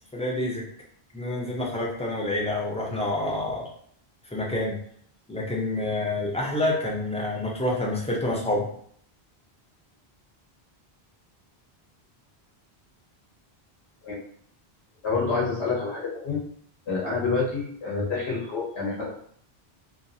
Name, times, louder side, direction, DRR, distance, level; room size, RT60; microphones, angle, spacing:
voice 1, 0.1-0.6 1.1-3.6 4.3-4.8 5.3-8.7, left 1 dB, 10° left, -3 dB, 0.3 m, -27 dB
voice 2, 15.0-16.4 16.9-19.1, left 4 dB, 90° left, -5 dB, 1.1 m, -27 dB
2.9 x 2.3 x 2.6 m, 0.62 s
omnidirectional pair, 1.1 m